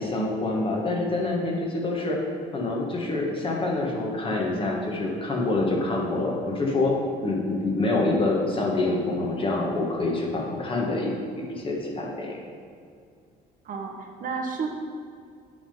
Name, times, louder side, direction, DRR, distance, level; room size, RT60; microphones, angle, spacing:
voice 1, 0.0-2.2 2.5-6.9 7.2-11.1 11.5-12.4, left 2 dB, 30° left, -1 dB, 1.4 m, -26 dB
voice 2, 13.6-14.7, right 5 dB, 55° right, 2 dB, 0.9 m, -31 dB
8.5 x 3.7 x 5.3 m, 2.2 s
cardioid pair, 110°, 17 cm